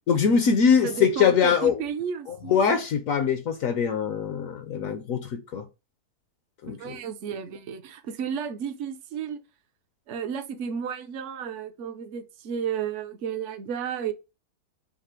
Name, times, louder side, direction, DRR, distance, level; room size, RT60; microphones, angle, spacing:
voice 1, 0.1-1.8 2.3-5.6 6.6-7.0, left 6 dB, 65° left, 0.9 m, -23 dB
voice 2, 0.8-2.6 6.8-9.4 10.1-14.1, right 7 dB, 60° right, 0.8 m, -32 dB
5.7 x 2.0 x 4.4 m
omnidirectional pair, 1.7 m